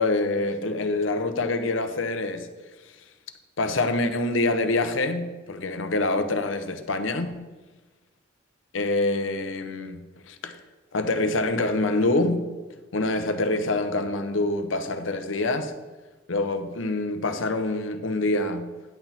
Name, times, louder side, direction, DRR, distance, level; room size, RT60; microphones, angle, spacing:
voice 1, 0.0-2.5 2.8-2.9 3.6-7.4 8.7-10.6 10.9-12.4 12.9-15.7 16.3-18.7, left 2 dB, 75° left, 9 dB, 0.8 m, -26 dB
10.0 x 6.1 x 4.2 m, 1.2 s
head